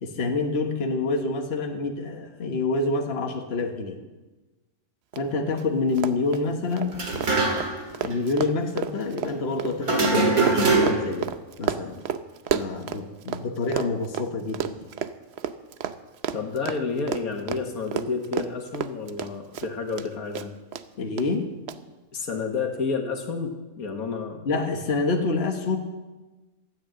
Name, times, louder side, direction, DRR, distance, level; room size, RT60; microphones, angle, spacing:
voice 1, 0.0-4.0 5.2-7.0 8.0-11.3 11.6-12.1 12.5-14.8 21.0-21.5 24.4-25.8, left 3 dB, 45° left, 3 dB, 1.4 m, -27 dB
Run, 5.1-5.2 5.5-5.6 5.9-13.4 13.7-20.1 20.3-20.8 21.2-21.3 21.7-21.8, right 8 dB, 60° right, 0.8 m, -31 dB
sound 1, 6.9-7.9 8.1-8.2 9.8-11.2, right 3 dB, 85° right, 2.6 m, -22 dB
voice 2, 16.3-20.5 22.1-24.5, left 4 dB, 80° left, 3 dB, 1.9 m, -30 dB
13.5 x 9.2 x 7.7 m, 1.2 s
omnidirectional pair, 1.5 m